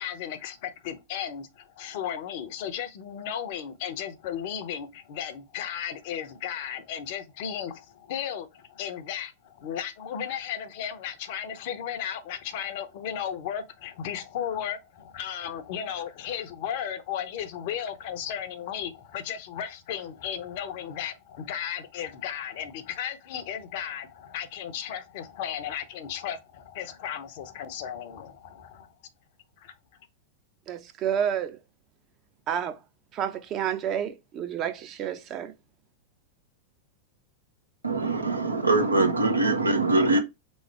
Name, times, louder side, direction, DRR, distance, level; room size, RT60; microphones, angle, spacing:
voice 1, 0.0-28.9 29.6-29.7, left 9 dB, 50° left, 0.7 m, -35 dB
voice 2, 30.7-31.6 32.5-32.8 33.1-35.5, right 9 dB, 35° right, 0.7 m, -30 dB
voice 3, 37.8-40.2, right 2 dB, 80° right, 0.8 m, -23 dB
3.8 x 3.2 x 3.2 m
figure-of-eight pair, 90°, 0 cm